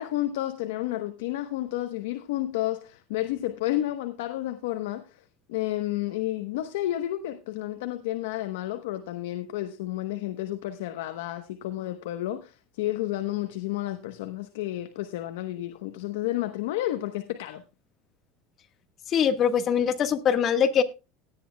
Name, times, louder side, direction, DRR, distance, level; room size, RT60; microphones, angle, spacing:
voice 1, 0.0-17.6, left 14 dB, 90° left, 1.0 m, -31 dB
voice 2, 19.1-20.8, left 8 dB, 35° left, 1.4 m, -23 dB
17.5 x 10.5 x 2.2 m
supercardioid pair, 135°, 0 cm